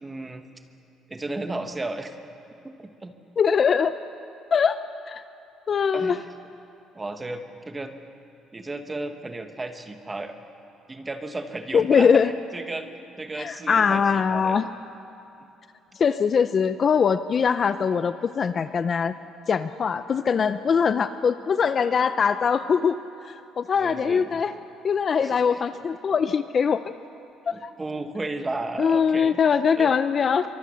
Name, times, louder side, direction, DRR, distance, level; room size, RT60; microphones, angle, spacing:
voice 1, 0.0-0.4 1.1-2.1 2.6-3.1 5.9-6.2 6.9-7.9 8.5-10.3 10.9-12.9 13.2-14.6 23.8-24.4 25.2-25.6 27.5-29.4 29.8-29.9, right 2 dB, 15° right, 6 dB, 1.3 m, -34 dB
voice 2, 3.4-3.9 4.5-4.8 5.1-5.2 5.7-6.2 11.7-12.3 13.4-14.7 16.0-19.1 19.5-23.0 23.2-24.5 24.8-26.9 27.6-27.7 28.8-30.4, left 6 dB, 30° left, 12 dB, 0.5 m, -22 dB
27.0 x 24.0 x 6.4 m, 2.8 s
cardioid pair, 160°, 0 cm